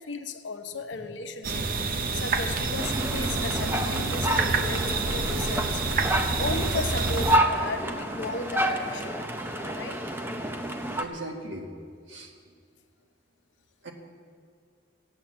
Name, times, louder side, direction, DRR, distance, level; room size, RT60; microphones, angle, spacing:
voice 1, 0.0-5.8 6.4-9.2 9.7-10.0, left 3 dB, 70° left, 6 dB, 1.0 m, -35 dB
sound 1, 1.4-7.4, right 3 dB, 50° right, 0.7 m, -28 dB
sound 2, 2.8-11.0, equal, 10° right, 0.8 m, -29 dB
voice 2, 9.0-9.6 11.0-11.7 12.1-12.3 13.8-13.9, right 1 dB, 80° right, 1 dB, 1.9 m, -40 dB
15.0 x 9.0 x 7.3 m, 2.1 s
head